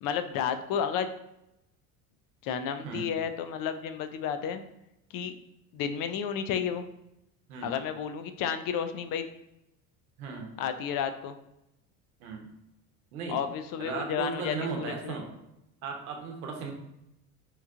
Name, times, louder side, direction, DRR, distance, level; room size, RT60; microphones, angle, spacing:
voice 1, 0.0-1.1 2.4-4.6 5.1-5.3 5.7-6.8 7.6-9.2 10.6-11.3 13.3-15.2, left 8 dB, 55° left, 9 dB, 0.5 m, -32 dB
voice 2, 10.2-10.5 12.2-12.5 13.1-13.4 13.8-15.3 15.8-16.7, right 5 dB, 85° right, 2 dB, 0.9 m, -36 dB
3.0 x 2.3 x 3.5 m, 0.85 s
hypercardioid pair, 70°, 42 cm